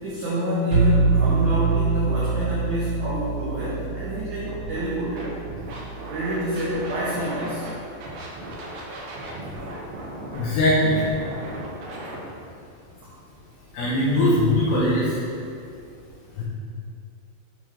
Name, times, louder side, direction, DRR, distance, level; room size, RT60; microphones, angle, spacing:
voice 1, 0.0-5.3 6.1-7.7, equal, 90° right, -8 dB, 1.7 m, -27 dB
sound 1, 0.7-6.5, right 4 dB, 60° right, 3.1 m, -25 dB
Scratching (performance technique), 4.5-4.8 5.2-7.7 8.0-12.2, right 1 dB, 75° right, 2.0 m, -36 dB
voice 2, 10.3-10.9 13.7-15.1 16.4-16.5, left 1 dB, 75° left, -7 dB, 2.2 m, -20 dB
8.1 x 5.6 x 3.5 m, 2.5 s
omnidirectional pair, 5.3 m